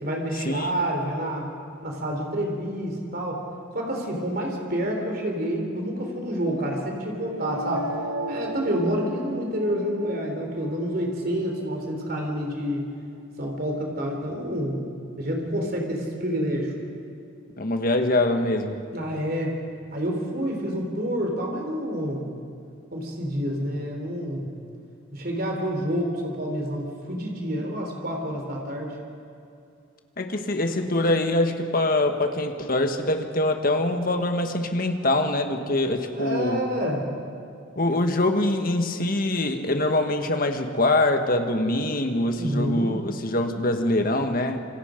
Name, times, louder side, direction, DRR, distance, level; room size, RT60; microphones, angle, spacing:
voice 1, 0.0-1.5 1.8-3.4 3.7-7.9 8.3-12.9 13.4-14.8 15.2-16.7 18.9-19.5 19.9-22.3 22.9-24.5 25.1-28.9 36.1-37.1 42.3-43.0, equal, 45° right, 1 dB, 3.7 m, -28 dB
sound 1, 7.1-13.1, right 1 dB, 75° right, 1.2 m, -37 dB
voice 2, 17.6-18.8 30.2-36.6 37.7-44.6, left 1 dB, 45° left, 6 dB, 1.5 m, -24 dB
27.0 x 25.5 x 5.2 m, 2.5 s
head